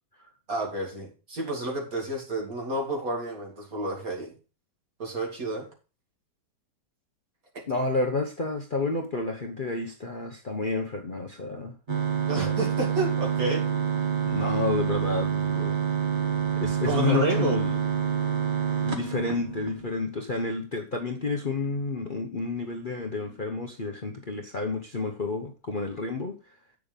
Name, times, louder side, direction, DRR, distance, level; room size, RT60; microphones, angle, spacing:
voice 1, 0.5-4.3 5.0-5.7 7.5-7.6 12.3-13.7 16.8-17.6, right 2 dB, 55° right, 3.0 m, -30 dB
voice 2, 7.7-11.7 14.2-15.8 16.6-17.8 18.8-26.4, left 3 dB, 35° left, 1.0 m, -30 dB
sound 1, 11.9-19.9, right 8 dB, 30° right, 1.4 m, -27 dB
8.6 x 6.6 x 5.3 m
omnidirectional pair, 1.8 m